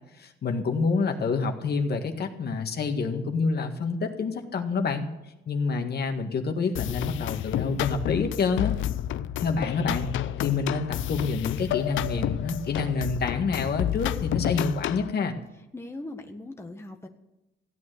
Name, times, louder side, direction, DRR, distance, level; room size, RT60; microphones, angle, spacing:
voice 1, 0.2-5.1 5.5-8.8 9.4-10.1 10.4-15.4, left 4 dB, 55° left, 5 dB, 1.8 m, -27 dB
sound 1, 6.8-15.1, left 12 dB, 75° left, 0.6 m, -30 dB
voice 2, 15.7-17.1, left 2 dB, 10° left, 4 dB, 1.3 m, -39 dB
15.5 x 8.7 x 6.5 m, 0.97 s
cardioid pair, 90°, 20 cm